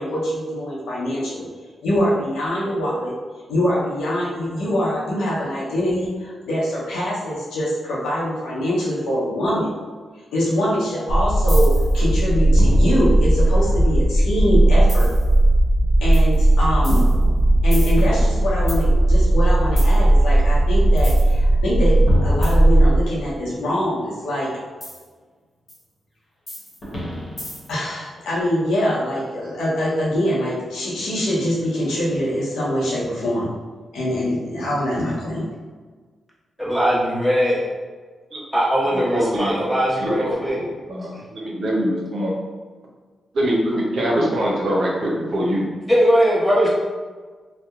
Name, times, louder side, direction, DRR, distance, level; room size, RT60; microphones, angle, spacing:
voice 1, 0.0-1.5 1.8-3.1 3.5-9.7 10.3-15.1 16.0-17.1 17.6-24.5 27.7-33.5 33.9-35.5, left 1 dB, 80° left, -7 dB, 0.7 m, -24 dB
sound 1, 11.1-23.0, right 1 dB, 65° left, 0.3 m, -16 dB
sound 2, 11.5-12.0 12.6-14.1 14.9-15.3 16.1-16.4 16.8-18.8 19.8-20.0 21.0-21.3 22.1-23.2 24.8-25.0 25.7-25.8 26.5-27.8, left 1 dB, 50° left, 1.0 m, -29 dB
voice 2, 36.6-37.6 38.5-40.6 45.9-46.7, equal, ahead, -7 dB, 1.2 m, -19 dB
voice 3, 38.9-39.6 40.0-42.3 43.3-45.6, equal, 70° right, -3 dB, 0.6 m, -23 dB
2.7 x 2.1 x 2.4 m, 1.5 s
supercardioid pair, 45°, 0 cm